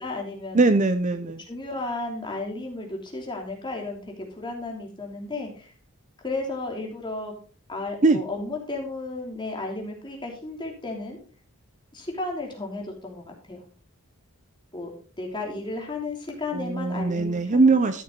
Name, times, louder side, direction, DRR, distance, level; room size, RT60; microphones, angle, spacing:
voice 1, 0.0-0.6 1.5-5.7 6.2-7.3 7.7-11.2 11.9-13.7 14.7-14.9 15.2-17.7, left 2 dB, 20° left, 1 dB, 3.0 m, -33 dB
voice 2, 0.5-1.4 8.0-8.2 16.5-18.0, right 3 dB, 35° right, 10 dB, 0.7 m, -21 dB
13.5 x 7.0 x 3.9 m, 0.38 s
head